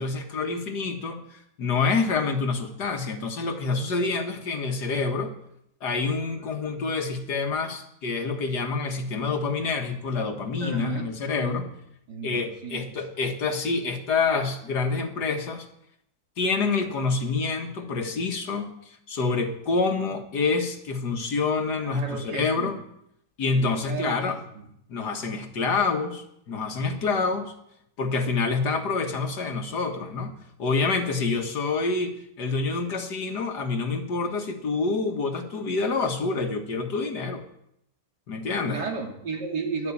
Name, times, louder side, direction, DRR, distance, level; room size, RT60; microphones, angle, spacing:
voice 1, 0.0-5.3 5.8-11.7 12.2-15.7 16.4-22.8 23.4-24.4 24.9-27.5 28.0-37.4 38.3-38.8, left 4 dB, 80° left, 4 dB, 2.1 m, -27 dB
voice 2, 10.6-11.1 11.4-11.6 12.1-12.8 21.8-22.7 23.6-24.7 38.7-39.9, right 4 dB, 80° right, 1 dB, 3.1 m, -33 dB
12.0 x 11.0 x 8.6 m, 0.77 s
omnidirectional pair, 1.8 m